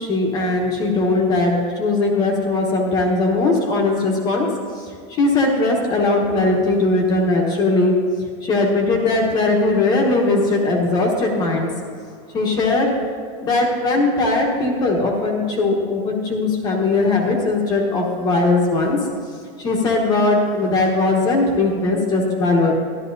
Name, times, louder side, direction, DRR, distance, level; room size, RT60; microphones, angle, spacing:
voice 1, 0.0-4.5 4.7-8.0 8.4-11.7 12.3-13.0 13.4-19.1 19.6-22.7, left 2 dB, 20° left, 0 dB, 1.1 m, -19 dB
12.5 x 11.5 x 2.7 m, 2.2 s
supercardioid pair, 175°, 17 cm